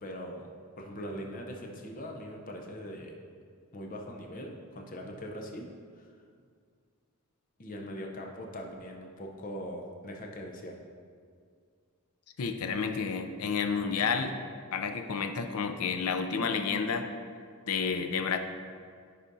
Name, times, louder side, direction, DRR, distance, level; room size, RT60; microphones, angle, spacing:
voice 1, 0.0-0.5 0.8-3.1 3.7-5.7 5.9-6.1 7.6-10.8, equal, 35° left, 1 dB, 0.6 m, -41 dB
voice 2, 12.4-14.3 14.7-17.1 17.7-18.4, left 5 dB, 85° left, 7 dB, 0.5 m, -30 dB
9.8 x 5.0 x 2.6 m, 2.1 s
head